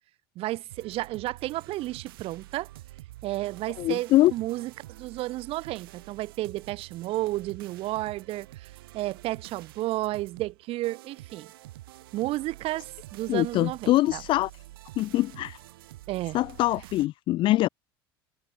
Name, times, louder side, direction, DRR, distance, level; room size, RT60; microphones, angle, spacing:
voice 1, 0.3-2.7 3.2-11.5 12.1-14.2 16.1-16.4, right 17 dB, 50° right, 1.2 m, -32 dB
sound 1, 0.7-17.1, right 17 dB, 70° right, 1.5 m, -48 dB
voice 2, 3.8-4.3 13.3-14.5 15.0-15.6 16.3-17.7, left 16 dB, 40° left, 0.4 m, -23 dB
figure-of-eight pair, 70°, 13 cm